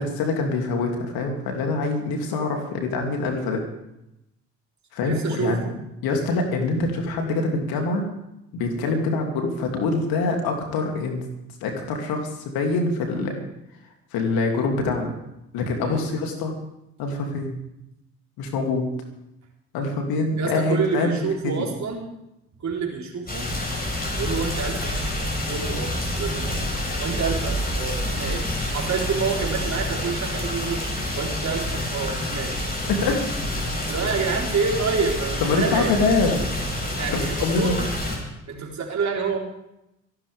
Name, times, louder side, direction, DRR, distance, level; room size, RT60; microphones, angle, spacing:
voice 1, 0.0-3.6 4.9-5.6 6.0-8.1 8.5-11.3 11.6-13.3 14.1-15.1 15.5-16.5 17.0-17.6 18.4-18.9 19.7-21.1 21.4-21.5 32.9-33.2 35.4-36.4 37.1-37.8, left 3 dB, 65° left, 2 dB, 3.0 m, -24 dB
voice 2, 5.1-5.7 15.8-16.0 20.3-22.1 22.6-23.5 24.1-24.9 25.4-26.6 27.0-32.7 33.9-36.0 37.0-37.8 38.5-39.4, right 5 dB, 45° right, -2 dB, 4.3 m, -28 dB
sound 1, 23.3-38.2, left 1 dB, 25° left, 7.4 m, -28 dB
26.5 x 12.0 x 3.6 m, 0.87 s
hypercardioid pair, 45°, 38 cm